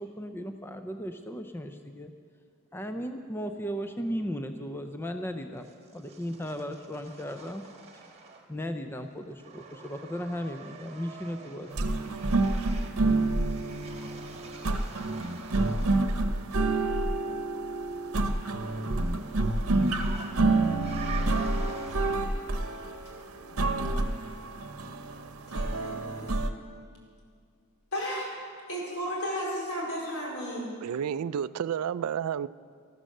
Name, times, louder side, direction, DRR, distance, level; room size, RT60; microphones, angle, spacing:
voice 1, 0.0-2.1 2.7-7.6 7.9-8.1 8.5-11.9, equal, 10° left, 0.5 m, -36 dB
sound 1, 5.6-8.7 9.0-16.3 17.8-22.5, right 5 dB, 30° right, 1.4 m, -47 dB
sound 2, 11.7-26.5, right 2 dB, 70° right, 0.9 m, -28 dB
voice 2, 25.5-26.3 27.9-28.3 28.7-30.7, equal, 75° left, 4.4 m, -34 dB
voice 3, 30.8-32.5, right 8 dB, 90° right, 0.4 m, -30 dB
13.5 x 12.5 x 6.6 m
head